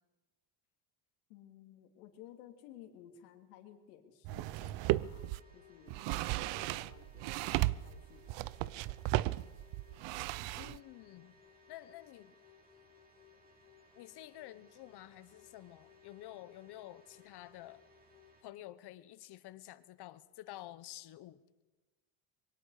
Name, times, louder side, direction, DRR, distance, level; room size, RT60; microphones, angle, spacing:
voice 1, 1.3-8.9, left 10 dB, 85° left, 4 dB, 3.2 m, -57 dB
sound 1, 4.2-5.4 5.9-10.8, right 18 dB, 65° right, 0.7 m, -35 dB
sound 2, 4.8-18.4, left 4 dB, 20° right, 7.9 m, -62 dB
voice 2, 10.6-11.4 11.7-12.3 14.0-17.8 18.4-21.4, left 14 dB, 55° left, 15 dB, 1.2 m, -50 dB
25.0 x 23.0 x 5.1 m, 1.2 s
supercardioid pair, 105°, 47 cm